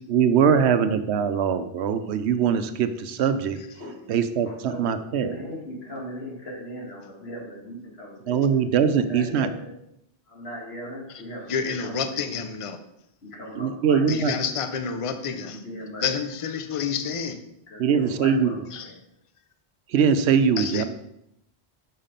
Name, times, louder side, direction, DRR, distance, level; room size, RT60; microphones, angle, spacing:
voice 1, 0.1-3.6 4.1-5.3 8.3-9.5 13.6-14.3 17.8-18.5 19.9-20.8, right 7 dB, 85° right, 11 dB, 0.9 m, -22 dB
voice 2, 4.5-8.4 8.9-9.7 10.3-12.3 13.2-14.0 15.4-16.2 17.7-19.0, equal, 75° left, -2 dB, 2.0 m, -38 dB
voice 3, 11.5-12.8 14.1-15.6 16.0-17.4 18.7-18.9 20.6-20.8, left 6 dB, 40° left, 9 dB, 0.6 m, -29 dB
5.8 x 5.7 x 5.2 m, 0.79 s
omnidirectional pair, 1.1 m